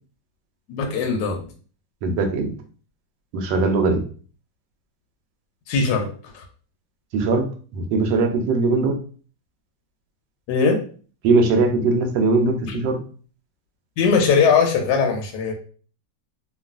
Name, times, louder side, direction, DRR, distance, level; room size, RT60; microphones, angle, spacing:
voice 1, 0.7-1.5 5.7-6.4 10.5-10.8 12.7-12.8 14.0-15.5, left 5 dB, 75° left, 3 dB, 1.1 m, -20 dB
voice 2, 2.0-2.5 3.3-4.0 7.1-8.9 11.2-13.0, right 3 dB, 75° right, 4 dB, 1.2 m, -20 dB
3.1 x 2.3 x 2.4 m, 0.41 s
omnidirectional pair, 2.0 m